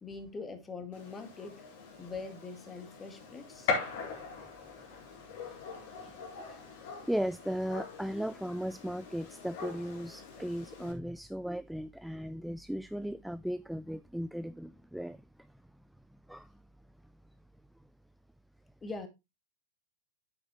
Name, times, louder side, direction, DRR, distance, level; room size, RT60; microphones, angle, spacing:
voice 1, 0.0-1.7 2.0-3.7 18.8-19.1, left 4 dB, 15° left, 2.1 m, -43 dB
Gunshot gunfire, 0.9-10.9, left 5 dB, 55° left, 4.3 m, -41 dB
voice 2, 7.1-15.2 16.3-16.5, equal, ahead, 0.4 m, -36 dB
9.3 x 8.7 x 3.1 m
figure-of-eight pair, 90°, 0 cm